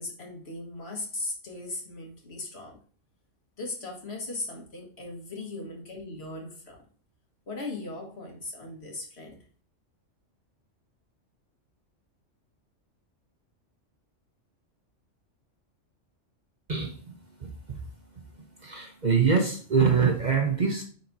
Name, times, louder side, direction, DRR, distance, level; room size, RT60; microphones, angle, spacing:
voice 1, 0.0-2.8 3.6-6.8 7.5-9.5, left 2 dB, 55° left, 0 dB, 1.9 m, -38 dB
voice 2, 16.7-17.1 17.4-17.9 18.1-18.2 18.6-20.8, right 5 dB, 40° right, 3 dB, 0.9 m, -25 dB
10.0 x 4.2 x 2.7 m, 0.41 s
omnidirectional pair, 1.3 m